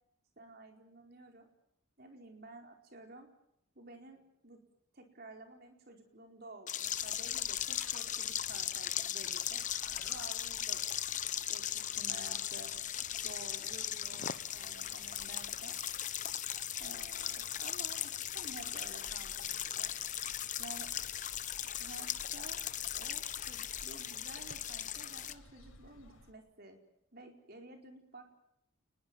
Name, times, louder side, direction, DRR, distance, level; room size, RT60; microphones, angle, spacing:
voice 1, 0.4-1.5 2.0-3.3 3.7-4.6 4.9-11.0 11.5-12.7 13.1-15.8 16.8-19.9 20.6-20.9 21.8-22.6 22.9-26.8 27.1-28.4, right 2 dB, 45° right, 3 dB, 4.5 m, -52 dB
sound 1, 6.7-25.3, left 10 dB, 35° left, 0.9 m, -38 dB
sound 2, 6.8-26.3, left 1 dB, 85° left, 6.6 m, -58 dB
29.0 x 21.0 x 7.8 m, 0.74 s
head